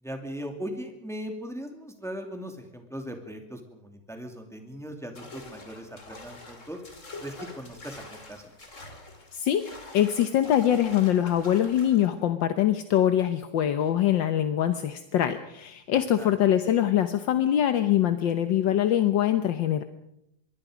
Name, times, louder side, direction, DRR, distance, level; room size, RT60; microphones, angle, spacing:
voice 1, 0.0-6.8 7.2-8.5 15.9-16.3, equal, ahead, 4 dB, 2.6 m, -39 dB
sound 1, 5.2-12.1, left 2 dB, 40° left, 3.3 m, -46 dB
voice 2, 9.3-9.6 9.9-19.8, left 11 dB, 75° left, 9 dB, 1.7 m, -23 dB
25.5 x 22.5 x 5.1 m, 0.78 s
omnidirectional pair, 2.1 m